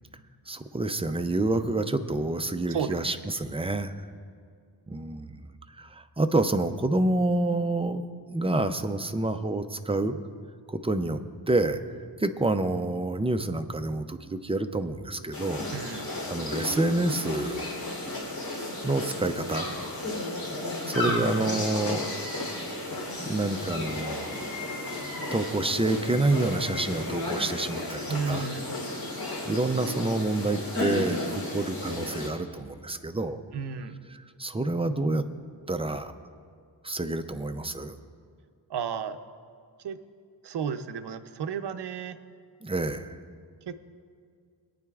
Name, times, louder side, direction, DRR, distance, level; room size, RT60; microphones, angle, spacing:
voice 1, 0.5-3.9 4.9-5.4 5.7-8.0 8.3-10.2 10.7-11.2 11.5-11.8 12.2-15.7 16.3-17.6 18.8-19.8 20.9-22.0 23.2-24.4 24.8-25.0 25.3-28.5 29.3-33.4 34.1-35.2 35.7-36.1 36.8-38.0 42.6-43.2, right 2 dB, 15° right, 8 dB, 0.4 m, -28 dB
sound 1, 15.3-32.3, left 1 dB, 55° left, 3.3 m, -33 dB
voice 2, 15.7-16.1 21.1-21.2 28.1-28.7 33.5-34.0 38.7-39.2 39.8-40.0 40.4-42.2 43.7-43.8, right 6 dB, 65° right, 8 dB, 0.7 m, -32 dB
21.5 x 9.3 x 2.4 m, 2.2 s
wide cardioid pair, 115°, 44 cm